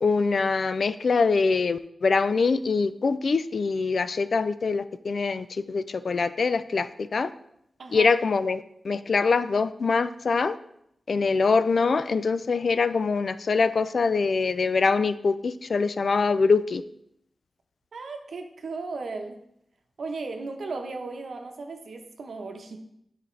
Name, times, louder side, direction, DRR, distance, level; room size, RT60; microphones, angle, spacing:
voice 1, 0.0-7.3 7.9-10.5 11.1-16.8, left 4 dB, 60° left, 13 dB, 0.3 m, -24 dB
voice 2, 7.8-8.1 17.9-19.4 20.0-22.8, right 3 dB, 70° right, 4 dB, 0.8 m, -36 dB
10.0 x 4.1 x 3.2 m, 0.74 s
wide cardioid pair, 130°, 0 cm